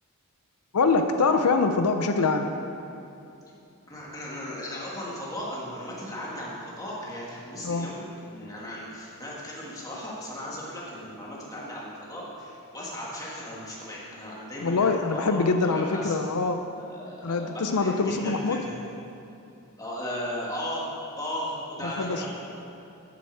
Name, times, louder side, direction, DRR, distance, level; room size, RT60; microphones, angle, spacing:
voice 1, 0.7-2.5 7.6-7.9 14.6-16.6 17.2-18.6 21.8-22.3, left 4 dB, 90° left, 6 dB, 0.6 m, -24 dB
voice 2, 3.9-16.2 16.8-17.9 18.2-18.8 19.8-20.8 21.2-22.3, equal, 15° left, -6 dB, 2.0 m, -36 dB
8.1 x 7.0 x 7.9 m, 2.8 s
head